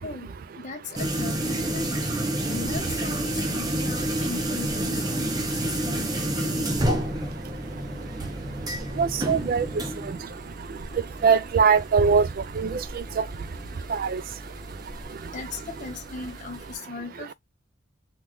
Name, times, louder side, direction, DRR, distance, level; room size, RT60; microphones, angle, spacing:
voice 1, 0.0-2.0 2.4-6.8 13.7-13.8 14.7-14.8 15.1-17.3, left 3 dB, 40° left, 0.6 m, -38 dB
sound 1, 1.0-16.7, right 1 dB, 20° right, 0.7 m, -30 dB
voice 2, 9.0-9.7 10.1-10.2 11.2-12.3 12.6-12.8 13.2-13.3 13.9-14.2, right 5 dB, 45° right, 0.3 m, -21 dB
3.7 x 2.3 x 3.0 m
head